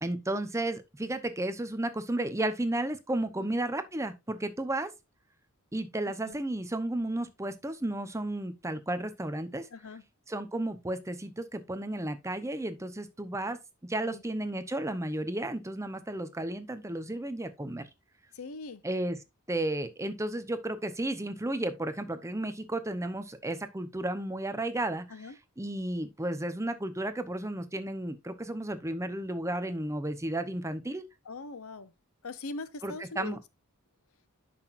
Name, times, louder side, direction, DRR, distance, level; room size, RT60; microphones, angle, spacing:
voice 1, 0.0-4.9 5.7-9.7 10.3-13.6 13.8-17.9 18.8-19.2 19.5-25.1 25.6-31.0 32.8-33.4, right 1 dB, 15° right, 0.8 m, -33 dB
voice 2, 9.7-10.0 14.0-14.2 18.3-18.8 25.1-25.4 31.2-31.9 32.2-33.4, left 3 dB, 75° left, 0.8 m, -41 dB
10.5 x 6.0 x 2.6 m
head